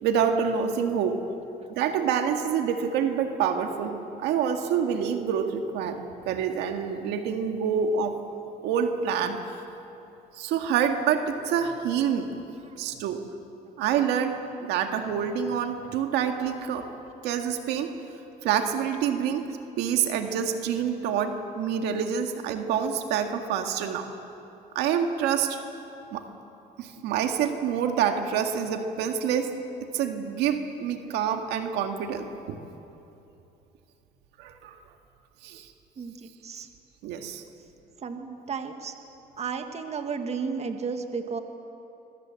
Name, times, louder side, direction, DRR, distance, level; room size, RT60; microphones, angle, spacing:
voice 1, 0.0-1.2 1.7-8.2 8.6-9.4 10.3-12.3 12.8-13.2 13.8-16.9 17.2-17.9 18.4-19.4 19.8-24.1 24.8-25.6 26.1-26.2 26.8-29.5 29.9-32.6 34.4-34.8 35.4-35.7 37.0-37.4, right 7 dB, 90° right, 5 dB, 1.9 m, -27 dB
voice 2, 36.0-36.7 38.0-38.9 39.4-41.4, right 5 dB, 40° right, 6 dB, 1.9 m, -33 dB
26.5 x 22.5 x 7.7 m, 2.9 s
cardioid pair, 110°, 17 cm